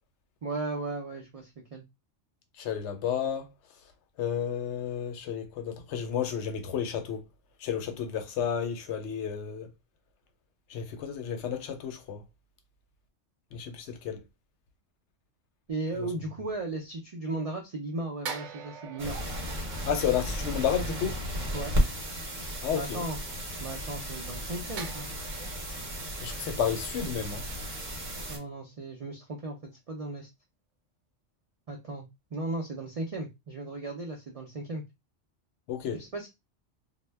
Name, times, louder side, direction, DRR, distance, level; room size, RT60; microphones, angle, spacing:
voice 1, 0.4-1.8 15.7-19.2 21.5-21.7 22.7-23.2 23.6-25.1 28.3-30.3 31.7-34.8 35.9-36.3, right 2 dB, 60° right, 0.3 m, -36 dB
voice 2, 2.6-3.5 4.2-7.2 7.6-9.7 10.7-12.2 13.5-14.2 16.0-16.1 19.9-21.2 22.6-23.0 26.2-27.4 35.7-36.0, left 8 dB, 75° left, 0.9 m, -31 dB
sound 1, 18.2-20.9 24.8-28.0 28.3-28.5, right 6 dB, 80° right, 0.9 m, -45 dB
sound 2, 19.0-28.4, equal, 45° right, 0.8 m, -34 dB
2.1 x 2.0 x 3.2 m
omnidirectional pair, 1.2 m